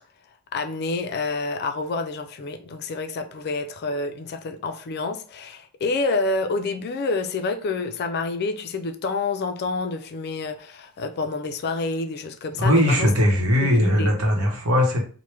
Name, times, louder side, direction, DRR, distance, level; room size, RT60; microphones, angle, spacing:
voice 1, 0.5-13.1 13.6-14.1, left 3 dB, 50° left, 0.3 m, -28 dB
voice 2, 12.6-15.0, equal, 70° right, 0.9 m, -19 dB
3.1 x 2.1 x 3.3 m
head